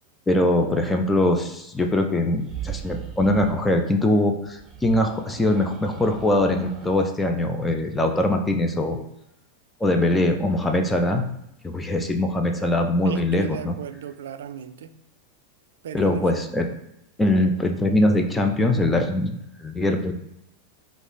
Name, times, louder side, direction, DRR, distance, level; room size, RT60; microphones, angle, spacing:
voice 1, 0.3-9.0 9.8-11.2 11.6-13.8 15.9-16.7 17.2-19.3 19.6-20.1, left 1 dB, 10° left, 4 dB, 0.4 m, -22 dB
sound 1, 2.3-3.6 4.5-7.1, right 9 dB, 20° right, 0.8 m, -39 dB
voice 2, 13.0-14.9 15.8-16.4, right 9 dB, 60° right, 11 dB, 0.3 m, -36 dB
4.9 x 2.5 x 3.8 m, 0.81 s
figure-of-eight pair, 90°, 0 cm